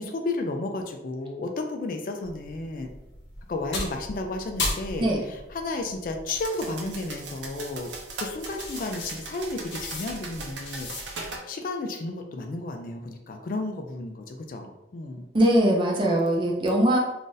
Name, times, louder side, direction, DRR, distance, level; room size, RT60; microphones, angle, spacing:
voice 1, 0.0-2.9 3.5-7.9 8.2-10.9 11.5-15.3, left 2 dB, 50° left, 4 dB, 0.3 m, -32 dB
sound 1, 2.2-11.4, left 2 dB, 80° left, 0.8 m, -37 dB
sound 2, 6.3-11.4, right 3 dB, 85° right, 0.7 m, -39 dB
voice 2, 15.3-17.0, right 1 dB, 25° right, -1 dB, 0.5 m, -21 dB
2.5 x 2.5 x 3.8 m, 0.95 s
head